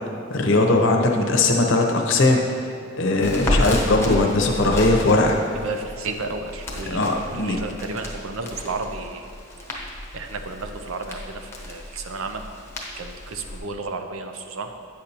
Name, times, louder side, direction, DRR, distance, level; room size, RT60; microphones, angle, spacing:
voice 1, 0.3-2.4 3.0-5.4 6.9-7.6, left 2 dB, 60° left, 2 dB, 0.7 m, -19 dB
Crackle, 3.2-13.6, left 1 dB, 10° left, 0.8 m, -31 dB
voice 2, 5.6-9.3 10.1-12.4 13.0-14.7, right 3 dB, 80° right, 6 dB, 0.5 m, -32 dB
8.7 x 6.6 x 2.9 m, 2.6 s
head